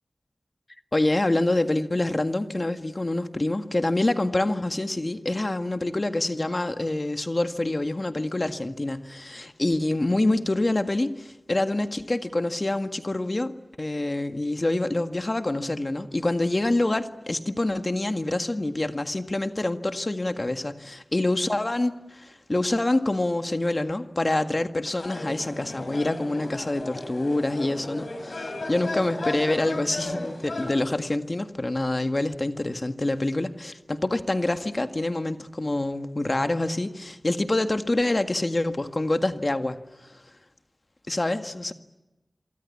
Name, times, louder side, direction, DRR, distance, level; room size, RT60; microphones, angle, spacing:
voice 1, 0.9-40.2 41.1-41.7, left 2 dB, 40° left, 8 dB, 1.8 m, -26 dB
sound 1, 24.9-30.7, left 2 dB, 75° left, 6.5 m, -35 dB
27.0 x 24.0 x 8.6 m, 1.0 s
cardioid pair, 45°, 0 cm